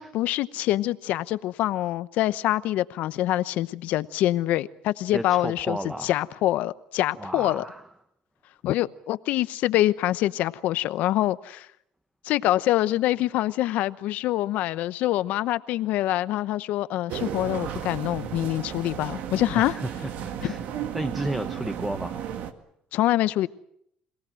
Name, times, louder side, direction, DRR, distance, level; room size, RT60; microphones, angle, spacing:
voice 1, 0.0-7.6 8.6-11.7 12.2-19.8 20.4-20.5 22.9-23.5, left 15 dB, 70° left, 16 dB, 0.9 m, -25 dB
voice 2, 5.1-6.2 7.2-7.8 19.5-20.7 20.9-22.2, right 1 dB, 10° right, 10 dB, 1.0 m, -33 dB
sound 1, 17.1-22.5, right 9 dB, 65° right, 1.9 m, -34 dB
26.5 x 18.0 x 7.7 m, 0.73 s
cardioid pair, 115°, 3 cm